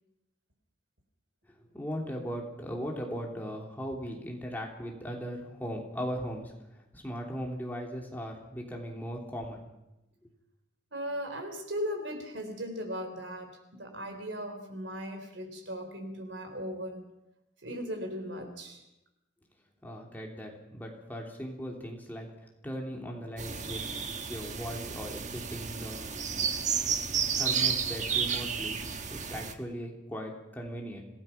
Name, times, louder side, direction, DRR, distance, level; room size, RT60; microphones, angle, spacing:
voice 1, 1.7-9.6 10.2-10.3 19.8-23.8 24.3-26.1 27.4-28.8 29.1-31.0, equal, 10° left, 0 dB, 3.2 m, -38 dB
voice 2, 10.9-17.0 17.6-18.9, equal, 70° right, 5 dB, 4.0 m, -37 dB
sound 1, 23.4-29.5, right 6 dB, 40° right, 1.3 m, -32 dB
26.5 x 17.5 x 5.9 m, 0.92 s
head